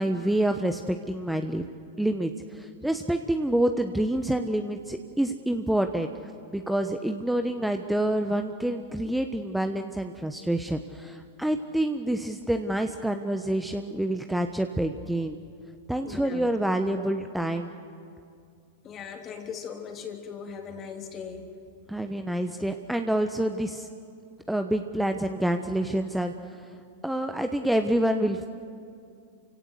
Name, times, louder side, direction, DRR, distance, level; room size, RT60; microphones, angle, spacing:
voice 1, 0.0-1.7 2.0-6.1 6.5-15.4 15.9-17.7 21.9-23.9 24.5-26.7 27.0-28.5, right 1 dB, 5° right, 7 dB, 1.0 m, -27 dB
voice 2, 16.0-16.4 16.9-17.1 18.8-21.4, left 6 dB, 30° left, 4 dB, 3.2 m, -39 dB
29.0 x 17.0 x 8.0 m, 2.4 s
hypercardioid pair, 100°, 0 cm